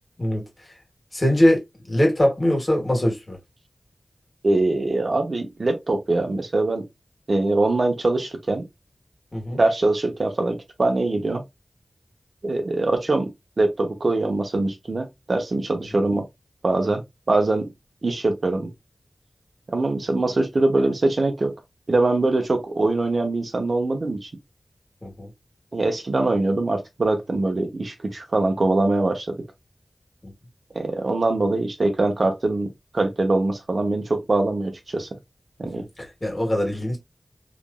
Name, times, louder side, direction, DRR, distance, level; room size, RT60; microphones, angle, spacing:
voice 1, 1.1-3.4 9.3-9.6 25.0-25.3 30.2-30.3 35.7-37.0, left 1 dB, 35° left, 1.4 m, -22 dB
voice 2, 4.4-6.8 7.3-8.6 9.5-11.4 12.4-13.3 13.6-16.2 16.6-17.0 17.3-17.7 18.0-18.7 19.7-21.5 21.9-24.3 25.7-29.3 30.7-32.7 32.9-35.1 35.6-35.8, right 2 dB, 65° right, 0.7 m, -22 dB
2.9 x 2.5 x 2.2 m
wide cardioid pair, 60°, 0 cm